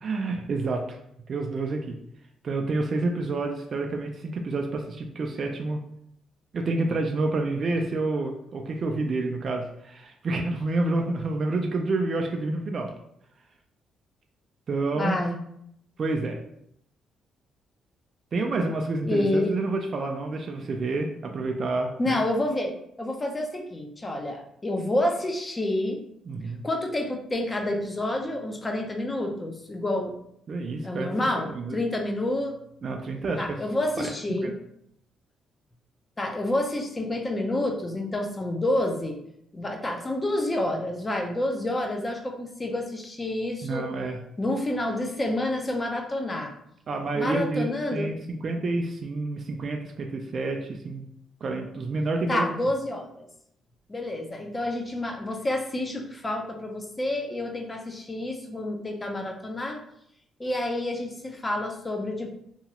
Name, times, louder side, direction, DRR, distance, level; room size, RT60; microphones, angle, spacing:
voice 1, 0.0-0.8 1.3-2.0 2.4-5.8 6.5-12.9 14.7-15.2 16.0-16.4 18.3-22.2 26.3-26.6 30.5-31.1 31.5-31.8 32.8-33.6 34.4-34.5 43.6-44.2 46.9-51.1 51.4-52.4, right 3 dB, 50° right, 3 dB, 0.3 m, -28 dB
voice 2, 14.9-15.4 19.1-19.5 22.0-26.0 26.6-30.2 30.8-32.5 33.4-34.6 36.2-39.2 39.5-43.9 44.4-46.5 47.1-48.1 52.3-53.3 53.9-59.8 60.4-62.3, left 1 dB, 20° left, 3 dB, 0.6 m, -28 dB
2.9 x 2.3 x 2.9 m, 0.73 s
cardioid pair, 90°, 0 cm